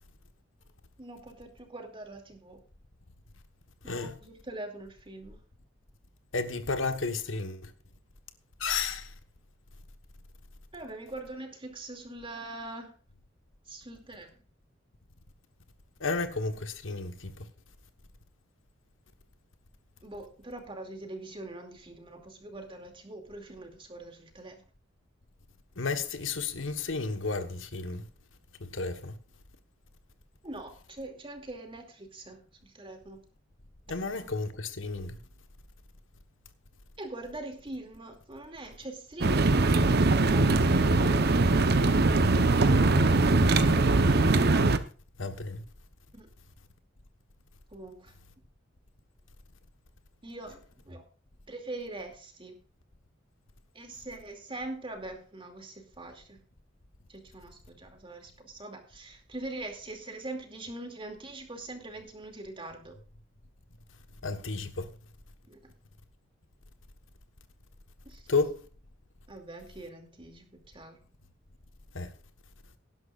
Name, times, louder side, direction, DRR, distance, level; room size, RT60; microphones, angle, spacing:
voice 1, 1.0-2.6 3.8-5.4 10.7-12.9 13.7-14.3 20.0-24.6 30.4-33.2 37.0-41.3 46.1-46.3 47.7-48.1 50.2-50.6 50.9-51.0 51.5-52.6 53.7-56.4 57.1-63.0 65.5-65.7 68.0-68.2 69.3-71.0, right 2 dB, 25° right, 2.5 m, -43 dB
voice 2, 6.3-7.7 8.6-9.1 16.0-17.5 25.8-28.0 28.6-29.1 33.9-35.2 42.9-43.2 45.2-45.6 64.2-64.9 68.3-68.6 71.9-72.1, left 4 dB, 90° left, 1.3 m, -32 dB
sound 1, 39.2-44.8, right 2 dB, 55° right, 0.9 m, -22 dB
18.5 x 11.0 x 2.5 m
head